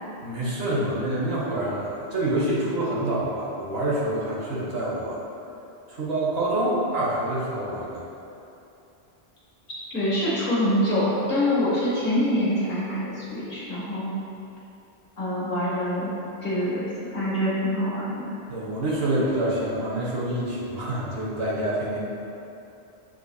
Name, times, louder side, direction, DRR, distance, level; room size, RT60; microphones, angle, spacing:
voice 1, 0.2-5.2 5.9-8.0 18.5-22.0, right 1 dB, 70° right, -6 dB, 1.1 m, -27 dB
voice 2, 9.9-14.1 15.2-16.1 16.4-18.3, left 1 dB, 50° left, -9 dB, 1.4 m, -25 dB
7.3 x 2.8 x 2.3 m, 2.8 s
omnidirectional pair, 1.1 m